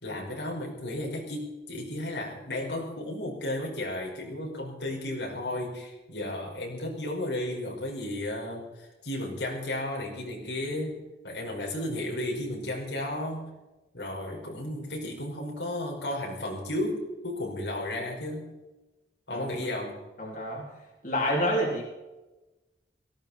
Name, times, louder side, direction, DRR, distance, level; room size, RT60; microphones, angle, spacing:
voice 1, 0.0-13.6 13.9-18.6 19.3-20.0, left 1 dB, 85° left, -1 dB, 5.2 m, -34 dB
voice 2, 20.2-20.6 21.0-21.8, equal, 45° left, -2 dB, 3.1 m, -28 dB
18.0 x 15.5 x 4.3 m, 1.1 s
head